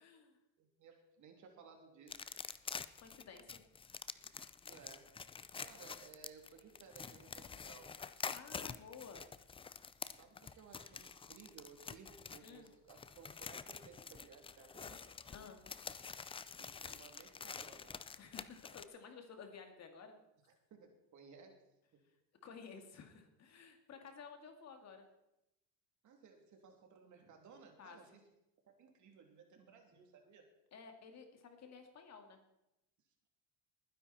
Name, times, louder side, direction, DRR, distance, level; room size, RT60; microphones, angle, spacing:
voice 1, 0.0-0.4 3.0-3.6 8.3-9.3 12.4-12.7 15.3-15.6 18.2-20.1 22.4-25.1 27.8-28.0 30.7-32.4, left 5 dB, 45° left, 5 dB, 2.3 m, -54 dB
voice 2, 0.6-2.3 4.6-5.1 5.6-8.0 10.2-15.0 16.6-18.0 20.7-21.7 26.0-28.2 28.7-30.5, right 5 dB, 50° right, 3 dB, 3.0 m, -59 dB
sound 1, 2.1-18.8, left 5 dB, 15° left, 0.4 m, -48 dB
20.0 x 9.9 x 4.3 m, 0.87 s
cardioid pair, 125°, 37 cm